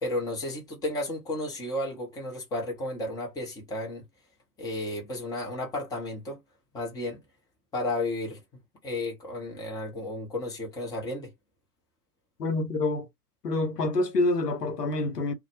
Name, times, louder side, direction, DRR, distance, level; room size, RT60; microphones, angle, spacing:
voice 1, 0.0-4.0 4.6-6.4 6.7-7.2 7.7-8.4 8.8-11.3, left 1 dB, 10° left, 0.6 m, -33 dB
voice 2, 12.4-13.1 13.4-15.3, left 2 dB, 80° left, 0.8 m, -27 dB
2.1 x 2.0 x 2.9 m
figure-of-eight pair, 95°, 47 cm